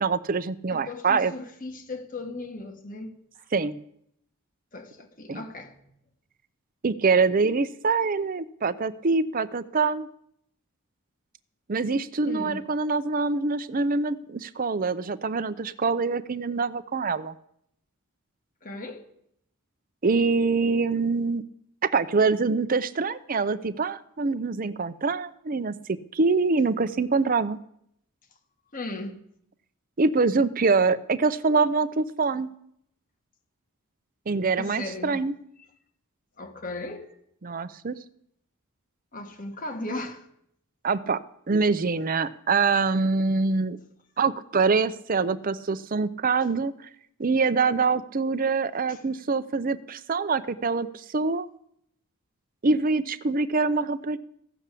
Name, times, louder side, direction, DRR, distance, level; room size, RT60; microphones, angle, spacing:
voice 1, 0.0-1.3 3.5-3.8 5.3-5.4 6.8-10.1 11.7-17.3 20.0-21.4 21.8-27.6 30.0-32.5 34.3-35.3 37.4-38.0 40.8-41.2 41.5-43.8 44.2-46.7 47.2-51.5 52.6-54.2, right 4 dB, 40° right, 0.6 m, -25 dB
voice 2, 0.7-3.1 3.3-3.4 4.7-5.7 12.3-12.6 18.6-19.0 28.7-29.2 34.6-35.2 36.4-37.1 39.1-40.3 48.9-49.0, left 2 dB, 40° left, 1.6 m, -36 dB
15.5 x 7.1 x 8.3 m
head